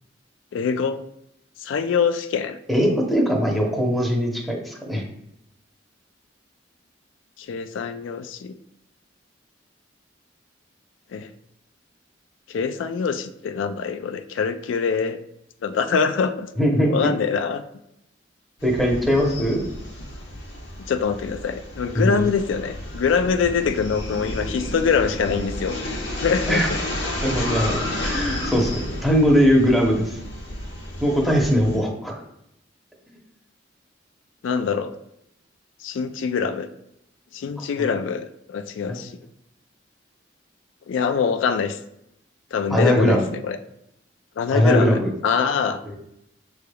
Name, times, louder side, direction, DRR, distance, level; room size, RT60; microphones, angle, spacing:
voice 1, 0.5-1.0 1.6-2.6 7.4-8.6 11.1-11.3 12.5-15.2 15.6-16.5 16.9-17.6 20.9-26.8 34.4-34.9 35.8-36.7 37.3-39.1 40.9-41.8 42.5-43.6 44.4-45.8, left 6 dB, 85° left, 9 dB, 0.3 m, -24 dB
voice 2, 2.7-5.0 16.6-16.9 18.6-19.6 21.9-22.3 26.5-26.7 27.2-30.2 31.0-32.2 37.8-37.9 38.9-39.0 42.7-43.2 44.5-45.1 45.9-46.0, equal, ahead, -1 dB, 0.8 m, -20 dB
sound 1, 18.6-31.8, left 1 dB, 65° left, 1.0 m, -31 dB
6.7 x 3.3 x 2.3 m, 0.78 s
head